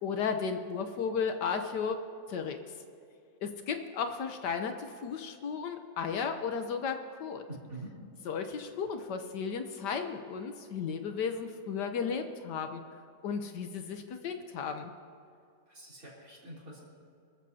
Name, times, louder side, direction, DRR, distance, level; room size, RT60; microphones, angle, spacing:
voice 1, 0.0-2.6 3.4-7.4 8.2-12.8 13.2-14.9, left 6 dB, 70° left, 7 dB, 1.4 m, -34 dB
voice 2, 7.5-7.9 15.7-16.8, right 2 dB, 50° right, -5 dB, 3.9 m, -45 dB
24.5 x 14.0 x 2.8 m, 2.5 s
omnidirectional pair, 2.0 m